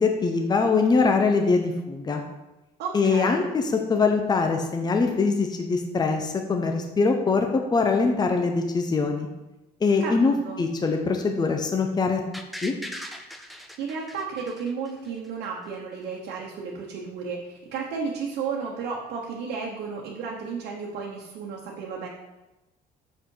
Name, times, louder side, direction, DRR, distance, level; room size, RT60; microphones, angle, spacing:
voice 1, 0.0-2.2 2.9-3.6 3.9-9.3 9.8-12.2 12.6-12.7, left 4 dB, 25° left, 4 dB, 0.8 m, -23 dB
voice 2, 2.8-3.5 10.0-10.6 13.8-22.1, right 5 dB, 85° right, -3 dB, 1.2 m, -33 dB
sound 1, 12.3-15.3 15.6-15.7, equal, ahead, 0.7 m, -39 dB
6.6 x 5.7 x 4.7 m, 1.0 s
cardioid pair, 110°, 17 cm